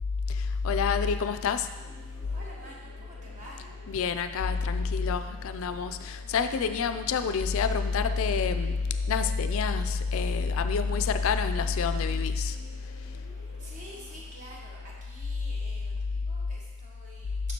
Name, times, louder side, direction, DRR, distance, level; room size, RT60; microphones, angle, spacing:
voice 1, 0.3-1.7 3.9-8.8 9.1-12.6, left 5 dB, 60° left, 10 dB, 0.4 m, -27 dB
sound 1, 1.7-15.0, right 1 dB, 75° right, 1.5 m, -53 dB
voice 2, 2.3-3.7 13.3-17.4, equal, 35° right, -4 dB, 1.4 m, -48 dB
7.0 x 6.0 x 2.9 m, 1.2 s
head